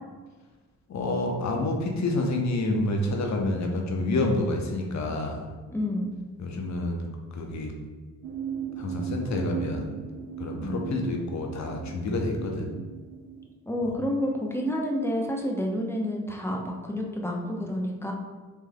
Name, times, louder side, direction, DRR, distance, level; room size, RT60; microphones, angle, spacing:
voice 1, 0.9-5.5 6.4-7.1 7.3-7.7 8.8-9.9 10.4-12.7, left 2 dB, 40° left, 2 dB, 0.8 m, -28 dB
voice 2, 5.7-6.2 10.6-10.9 13.7-18.1, left 1 dB, 5° left, 0 dB, 0.7 m, -29 dB
sound 1, 8.2-13.5, right 8 dB, 75° right, 0.5 m, -37 dB
3.4 x 3.1 x 2.2 m, 1.3 s
hypercardioid pair, 40°, 42 cm